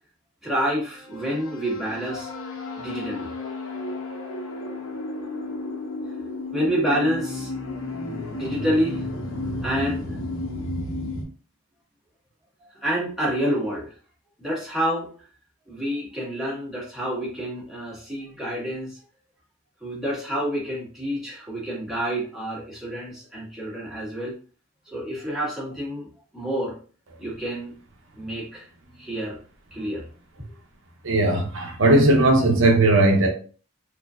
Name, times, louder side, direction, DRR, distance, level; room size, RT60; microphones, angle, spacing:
voice 1, 0.4-2.3 2.8-3.3 5.2-5.3 6.5-7.5 8.3-9.1 9.6-10.2 12.6-13.9 14.4-15.1 15.7-19.0 19.8-24.3 24.8-26.1 26.3-26.8 27.2-27.8 28.1-28.7 29.0-29.4 29.7-30.0 30.4-30.5, equal, ahead, 1.5 m, -28 dB
sound 1, 0.9-11.2, left 2 dB, 85° left, 1.0 m, -32 dB
voice 2, 31.0-33.3, right 2 dB, 65° right, 0.7 m, -18 dB
4.2 x 2.6 x 2.4 m
head